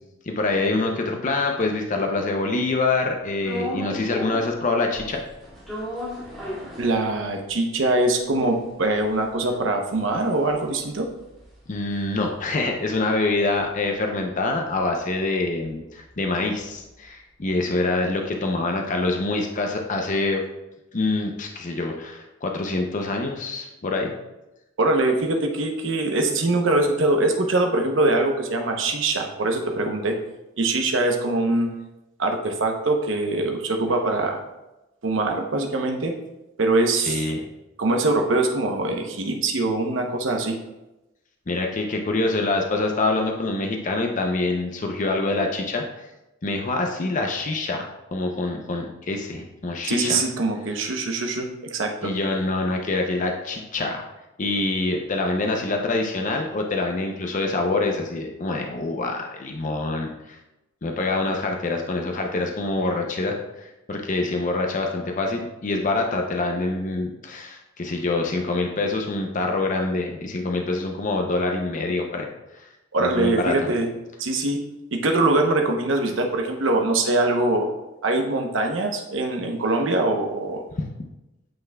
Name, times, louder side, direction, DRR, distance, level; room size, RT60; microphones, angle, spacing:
voice 1, 0.3-5.2 11.7-20.4 20.9-24.1 36.9-37.4 41.5-46.1 46.4-50.2 52.0-54.0 54.4-60.4 60.8-72.3 72.5-72.7 73.0-73.5 80.8-80.9, left 2 dB, 40° left, 2 dB, 0.6 m, -25 dB
sound 1, 3.4-4.6 4.9-7.5 7.9-8.0 8.2-12.7 13.0-17.1, left 1 dB, ahead, 2.2 m, -37 dB
voice 2, 6.8-11.1 24.8-30.2 30.6-31.7 32.2-34.4 35.0-36.1 36.6-37.3 37.8-40.6 49.8-52.1 72.9-73.9 74.2-74.6 74.9-77.7 78.0-80.6, right 2 dB, 70° right, 3 dB, 0.8 m, -23 dB
8.8 x 5.8 x 2.3 m, 0.97 s
head